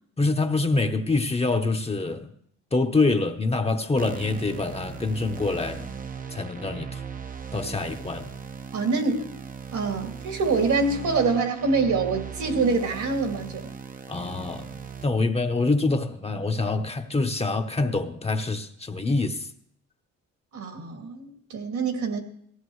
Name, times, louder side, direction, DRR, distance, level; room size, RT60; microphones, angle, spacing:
voice 1, 0.2-2.3 2.7-5.9 6.3-7.0 7.5-8.4 14.1-19.5, left 3 dB, 20° left, 0.9 m, -25 dB
sound 1, 4.0-15.0, right 6 dB, 30° right, 0.7 m, -38 dB
voice 2, 8.7-9.3 9.7-13.7 20.5-22.2, right 4 dB, 70° right, 2.4 m, -25 dB
18.0 x 14.5 x 3.2 m
cardioid pair, 90°, 30 cm